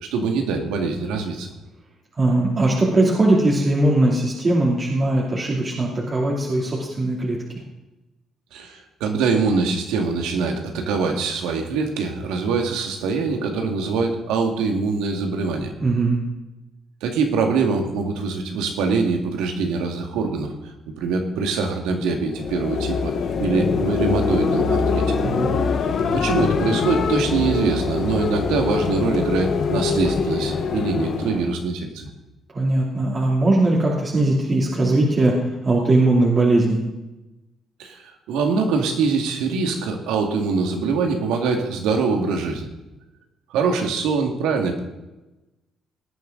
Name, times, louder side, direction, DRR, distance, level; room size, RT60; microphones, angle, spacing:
voice 1, 0.0-1.5 8.5-15.7 17.0-20.5 21.0-23.1 23.4-25.1 26.1-32.1 37.8-38.0 38.3-42.7 43.5-44.8, right 4 dB, 90° right, 3 dB, 2.0 m, -23 dB
voice 2, 2.2-7.4 15.8-16.2 25.2-25.5 32.5-35.4 35.6-36.8, right 2 dB, 35° right, -4 dB, 2.9 m, -19 dB
sound 1, 22.2-31.6, left 5 dB, 60° left, 1.3 m, -23 dB
19.0 x 9.2 x 3.9 m, 1.0 s
supercardioid pair, 70°, 0 cm